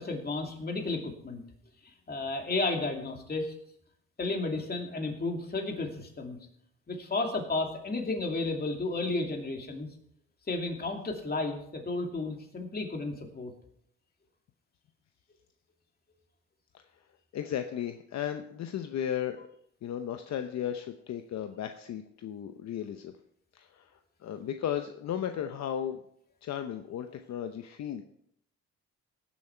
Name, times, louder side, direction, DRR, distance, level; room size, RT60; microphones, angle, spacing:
voice 1, 0.0-1.4 2.1-3.5 4.2-6.4 6.9-9.9 10.5-13.5, left 3 dB, 30° left, 2 dB, 2.5 m, -32 dB
voice 2, 17.3-19.5 19.8-23.1 23.5-26.0 26.4-28.0, left 9 dB, 60° left, 7 dB, 0.8 m, -35 dB
17.0 x 7.2 x 4.5 m, 0.69 s
cardioid pair, 90°, 30 cm